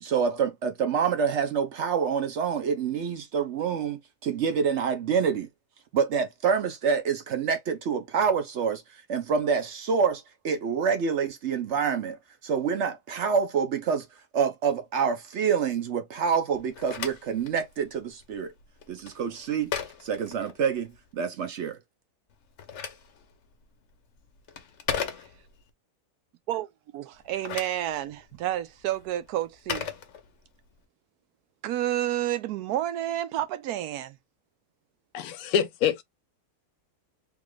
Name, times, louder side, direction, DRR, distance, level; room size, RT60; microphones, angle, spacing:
voice 1, 0.0-5.5 5.9-14.1 14.3-18.5 18.9-19.7 20.0-21.8, right 6 dB, 60° right, 0.8 m, -27 dB
Telephone, 16.5-21.1 22.3-25.7 27.1-30.7, left 7 dB, 55° left, 1.0 m, -38 dB
voice 2, 26.9-29.9 31.6-34.1, right 13 dB, 80° right, 1.1 m, -30 dB
voice 3, 35.1-36.0, left 8 dB, 80° left, 1.1 m, -26 dB
3.5 x 2.4 x 3.2 m
omnidirectional pair, 1.6 m